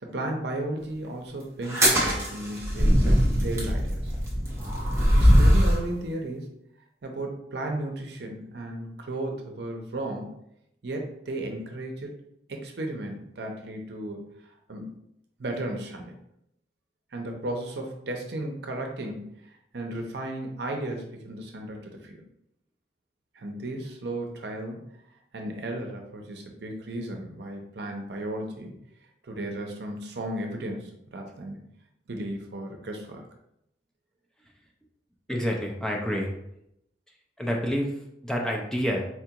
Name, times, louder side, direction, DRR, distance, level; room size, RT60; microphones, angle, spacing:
voice 1, 0.0-4.1 5.1-6.5 7.0-10.4 10.8-12.1 12.5-14.2 14.7-14.9 15.4-16.1 17.1-19.4 19.7-22.2 23.3-24.9 25.3-28.7 29.2-31.6 32.1-33.2, right 1 dB, 70° right, 2 dB, 0.6 m, -34 dB
sound 1, 1.6-5.9, equal, 15° right, 0.9 m, -21 dB
voice 2, 35.3-36.3 37.4-39.1, equal, 5° left, 0 dB, 0.4 m, -28 dB
4.4 x 2.3 x 2.8 m, 0.77 s
head